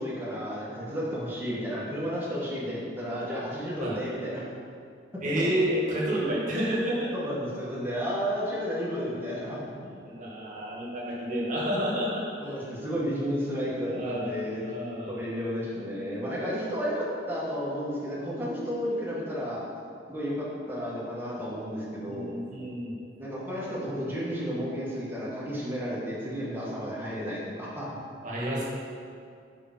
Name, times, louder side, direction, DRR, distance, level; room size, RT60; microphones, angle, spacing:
voice 1, 0.0-4.5 6.2-6.3 7.1-9.6 12.4-14.6 15.1-19.6 20.1-22.4 23.2-28.0, equal, 10° right, -7 dB, 1.4 m, -32 dB
voice 2, 5.2-7.1 9.8-12.7 13.9-14.3 14.6-15.2 22.1-23.0 28.2-28.6, equal, 45° right, -5 dB, 1.5 m, -30 dB
5.0 x 4.8 x 5.8 m, 2.3 s
head